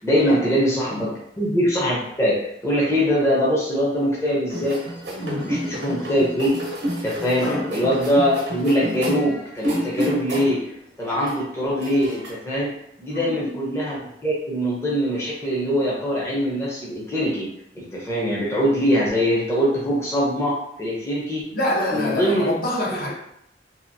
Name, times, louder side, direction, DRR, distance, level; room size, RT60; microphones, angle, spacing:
voice 1, 0.0-4.8 5.1-6.5 7.0-10.6 11.0-12.7 13.0-17.5 17.7-21.5 21.9-22.5, equal, 15° left, -6 dB, 0.6 m, -23 dB
sound 1, 4.5-10.7 11.0-12.3, equal, 75° right, 0.8 m, -29 dB
voice 2, 5.2-6.0 7.4-7.8 13.1-13.6 21.5-23.1, left 1 dB, 55° left, -4 dB, 0.7 m, -26 dB
2.7 x 2.5 x 2.6 m, 0.76 s
head